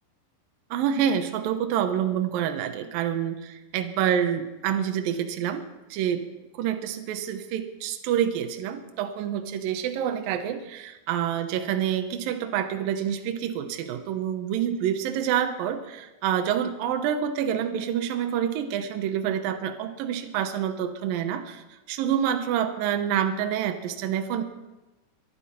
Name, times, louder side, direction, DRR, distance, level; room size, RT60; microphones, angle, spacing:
voice 1, 0.7-5.6 5.9-6.2 6.6-24.4, right 9 dB, 75° right, 7 dB, 2.2 m, -27 dB
24.0 x 10.5 x 4.3 m, 1.0 s
omnidirectional pair, 5.2 m